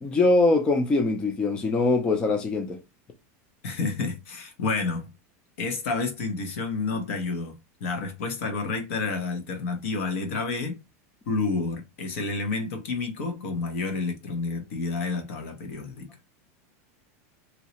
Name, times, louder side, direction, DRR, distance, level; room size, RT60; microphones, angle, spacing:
voice 1, 0.0-2.8, left 3 dB, 10° left, 0.3 m, -22 dB
voice 2, 3.6-5.1 5.6-10.8 11.3-16.1, left 4 dB, 65° left, 1.1 m, -30 dB
3.1 x 2.7 x 2.9 m
supercardioid pair, 175°, 8 cm